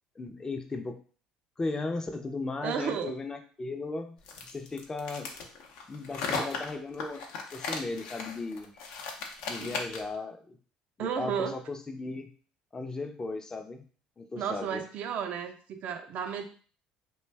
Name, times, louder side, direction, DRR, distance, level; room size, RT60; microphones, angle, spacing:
voice 1, 0.2-1.0 1.6-4.2 4.5-5.3 5.9-7.2 7.5-8.9 9.5-10.6 11.0-12.3 12.7-13.8 14.2-14.8, left 3 dB, 25° left, 5 dB, 0.5 m, -36 dB
voice 2, 2.6-3.1 9.6-9.8 11.0-11.6 14.4-16.4, right 7 dB, 60° right, 6 dB, 0.5 m, -33 dB
sound 1, 4.2-10.2, left 4 dB, 75° left, 0.6 m, -37 dB
2.5 x 2.2 x 3.3 m, 0.42 s
hypercardioid pair, 75°, 3 cm